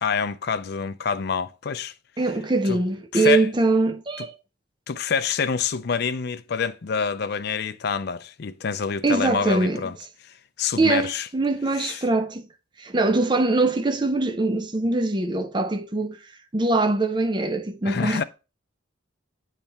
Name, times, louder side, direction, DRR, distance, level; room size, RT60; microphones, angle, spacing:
voice 1, 0.0-1.9 2.7-2.8 3.1-3.5 4.9-9.9 10.6-11.3 11.8-12.0 17.8-18.2, left 6 dB, 50° left, 0.4 m, -27 dB
voice 2, 2.2-4.3 9.0-9.8 10.8-12.5 12.8-16.2 16.5-18.2, right 2 dB, 25° right, 0.5 m, -22 dB
8.8 x 3.3 x 4.1 m
head